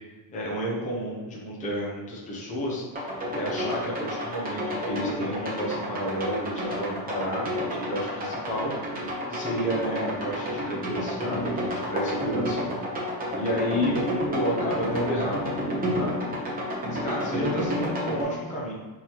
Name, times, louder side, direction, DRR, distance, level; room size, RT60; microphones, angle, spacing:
voice 1, 0.3-8.7 9.3-12.6 13.0-14.0 14.3-15.5 15.9-16.2 16.9-18.7, equal, 15° left, -5 dB, 0.7 m, -31 dB
sound 1, 2.9-18.2, equal, 20° right, 0.8 m, -30 dB
4.6 x 3.7 x 2.9 m, 1.3 s
cardioid pair, 170°, 48 cm